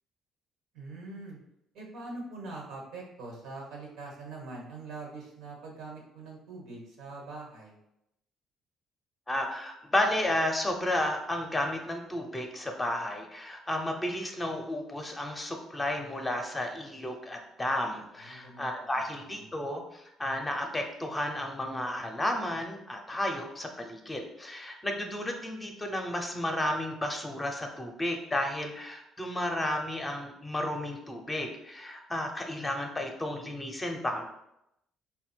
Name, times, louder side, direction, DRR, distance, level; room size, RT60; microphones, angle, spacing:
voice 1, 0.7-1.4 1.7-7.7 18.3-19.5, right 3 dB, 85° right, -1 dB, 1.3 m, -43 dB
voice 2, 9.3-34.3, left 1 dB, 15° left, 3 dB, 0.7 m, -32 dB
4.2 x 2.2 x 4.3 m, 0.82 s
cardioid pair, 100°, 0 cm